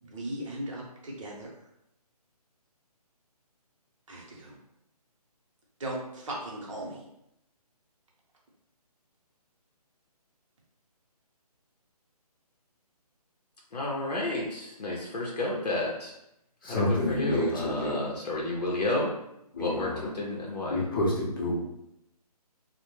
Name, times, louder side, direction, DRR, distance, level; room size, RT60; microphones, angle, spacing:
voice 1, 0.0-1.5 4.1-4.6 5.8-7.0, right 1 dB, 50° right, -2 dB, 0.8 m, -37 dB
voice 2, 13.7-16.1 16.6-19.1 19.6-20.8, left 2 dB, 85° left, -3 dB, 0.6 m, -31 dB
voice 3, 16.6-18.0 19.5-20.1 20.7-21.6, left 1 dB, 35° left, -4 dB, 0.6 m, -29 dB
2.1 x 2.1 x 2.9 m, 0.83 s
hypercardioid pair, 160°, 20 cm